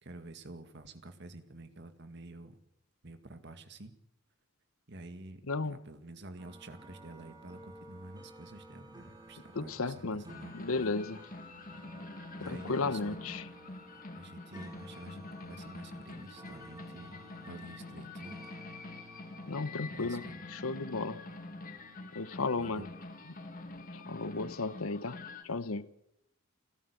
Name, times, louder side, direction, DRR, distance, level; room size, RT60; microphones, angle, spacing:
voice 1, 0.0-2.6 3.0-3.9 4.9-11.0 12.4-13.3 14.1-18.5 19.9-20.4 22.6-22.9, right 2 dB, 55° right, 2.0 m, -49 dB
voice 2, 5.5-5.8 9.5-10.2 10.5-11.2 12.5-13.4 19.5-21.2 22.1-22.9 23.9-25.9, left 3 dB, 80° left, 0.9 m, -34 dB
sound 1, 6.4-23.8, right 1 dB, 20° right, 4.4 m, -54 dB
sound 2, 10.3-25.4, left 2 dB, 40° left, 1.8 m, -46 dB
29.5 x 13.0 x 8.4 m
head